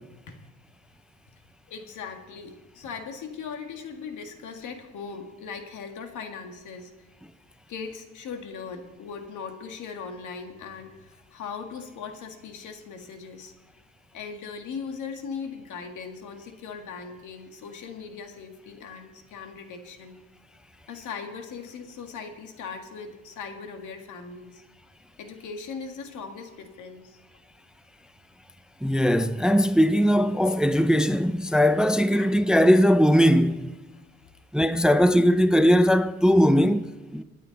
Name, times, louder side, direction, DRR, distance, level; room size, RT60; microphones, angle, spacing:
voice 1, 1.7-6.9 7.7-13.5 14.1-20.2 20.9-24.6 25.2-27.2 32.1-32.4 33.9-34.0, left 5 dB, 75° left, 1.8 m, -39 dB
voice 2, 28.8-33.7 34.5-36.9 37.1-37.2, equal, ahead, 0.5 m, -20 dB
24.0 x 8.7 x 4.0 m
cardioid pair, 90°, 30 cm